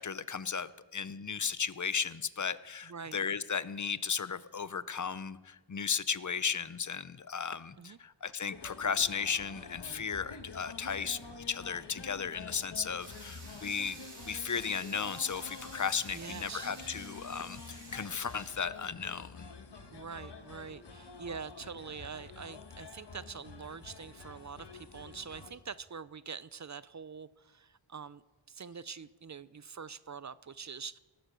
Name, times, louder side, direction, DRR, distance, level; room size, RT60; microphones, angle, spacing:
voice 1, 0.0-14.0 14.3-19.5, left 6 dB, 40° left, 16 dB, 0.6 m, -35 dB
voice 2, 2.9-3.2 7.8-8.0 16.1-16.7 19.9-28.2 28.5-31.0, right 6 dB, 40° right, 17 dB, 0.4 m, -45 dB
sound 1, 8.5-25.5, left 4 dB, 55° left, 1.3 m, -48 dB
sound 2, 13.0-18.5, right 2 dB, 65° right, 4.2 m, -51 dB
18.5 x 10.0 x 6.3 m, 1.2 s
wide cardioid pair, 75°, 50 cm